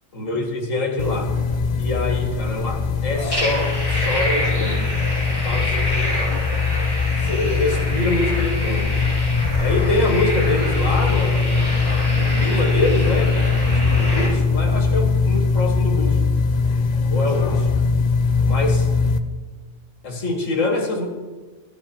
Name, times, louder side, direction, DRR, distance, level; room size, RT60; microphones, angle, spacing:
voice 1, 0.1-1.3 1.8-4.9 5.4-6.2 7.2-8.9 9.6-16.2 17.1-17.7 18.4-18.9 20.0-21.1, left 2 dB, 80° left, 2 dB, 2.1 m, -25 dB
sound 1, 1.0-19.2, left 4 dB, 50° left, 0.5 m, -21 dB
sound 2, 3.3-14.3, equal, 15° left, 4.0 m, -28 dB
13.5 x 9.2 x 4.4 m, 1.3 s
omnidirectional pair, 1.3 m